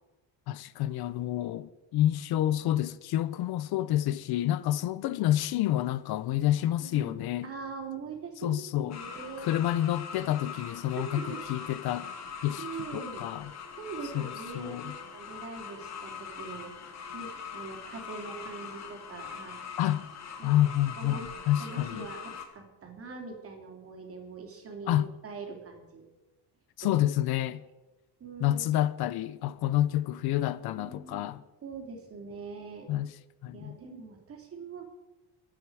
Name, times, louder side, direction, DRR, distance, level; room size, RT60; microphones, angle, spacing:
voice 1, 0.5-7.5 8.4-9.0 9.4-12.1 12.4-12.7 12.9-13.5 14.1-14.9 19.8-20.1 20.4-22.1 24.9-25.1 26.8-27.6 28.4-31.4 32.9-33.1 33.4-33.8, left 13 dB, 65° left, 0.6 m, -28 dB
voice 2, 6.8-9.5 10.9-11.4 12.6-13.3 13.8-19.6 20.4-20.6 21.0-21.3 21.6-26.0 26.8-26.9 27.5-27.6 28.2-28.6 30.7-31.3 31.6-32.9 33.5-34.9, right 5 dB, 35° right, 3.0 m, -42 dB
sound 1, 8.9-22.4, left 6 dB, 40° left, 1.7 m, -42 dB
24.0 x 8.7 x 4.7 m
cardioid pair, 175°, 42 cm